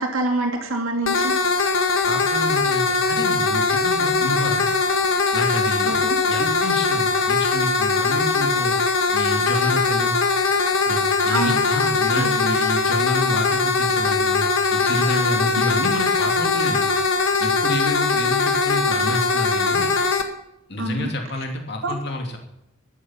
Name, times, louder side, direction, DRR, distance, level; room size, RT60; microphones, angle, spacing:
voice 1, 0.0-1.3 5.8-6.2 11.3-11.6 12.2-12.3 20.8-21.1 21.8-21.9, right 2 dB, 75° right, 1 dB, 2.6 m, -25 dB
sound 1, 1.1-20.2, left 4 dB, 70° left, 1.7 m, -21 dB
voice 2, 2.0-4.6 5.3-6.0 6.3-8.8 9.1-10.2 10.9-14.4 14.7-16.9 17.4-19.9 20.7-22.4, left 1 dB, 50° left, 2 dB, 2.7 m, -28 dB
14.0 x 10.0 x 7.3 m, 0.83 s
head